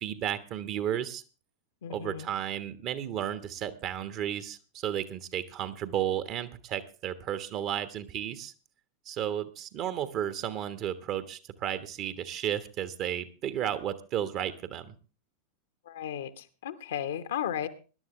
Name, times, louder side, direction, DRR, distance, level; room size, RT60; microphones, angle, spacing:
voice 1, 0.0-1.2 1.9-8.5 9.0-14.9, right 10 dB, 40° right, 12 dB, 1.3 m, -33 dB
voice 2, 1.8-2.3 15.9-17.7, left 10 dB, 60° left, 11 dB, 1.2 m, -34 dB
20.0 x 11.5 x 3.2 m, 0.34 s
figure-of-eight pair, 90°, 0 cm